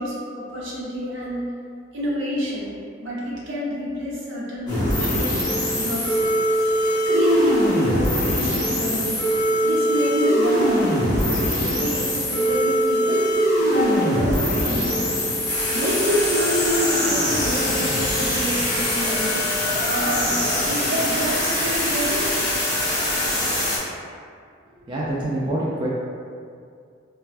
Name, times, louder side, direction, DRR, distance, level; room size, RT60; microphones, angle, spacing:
voice 1, 0.0-1.4 1.9-2.7 3.0-5.4 5.8-6.2 7.1-9.2 9.6-10.8 11.1-13.3 13.6-15.1 15.7-19.4 19.8-20.3 20.6-22.3, equal, 75° right, -6 dB, 0.8 m, -27 dB
sound 1, 4.7-23.8, equal, 20° left, 0.8 m, -22 dB
voice 2, 24.9-25.9, right 1 dB, 25° right, -6 dB, 0.3 m, -25 dB
4.3 x 2.2 x 2.4 m, 2.3 s
head